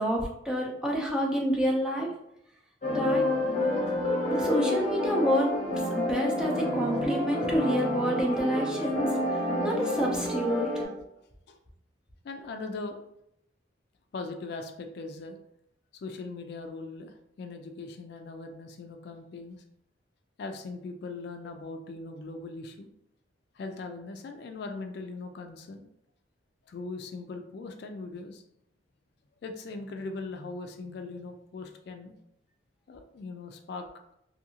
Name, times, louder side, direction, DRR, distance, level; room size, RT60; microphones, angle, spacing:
voice 1, 0.0-2.1 2.9-3.3 4.3-5.5 6.0-10.8, equal, 5° right, -2 dB, 0.5 m, -28 dB
sound 1, 2.8-10.8, left 1 dB, 40° left, 0.7 m, -29 dB
voice 2, 12.2-13.0 14.1-15.4 15.9-19.6 20.4-22.9 23.5-25.9 26.7-28.4 29.4-32.1 32.9-33.9, left 3 dB, 60° left, 5 dB, 0.3 m, -40 dB
2.7 x 2.6 x 2.7 m, 0.77 s
head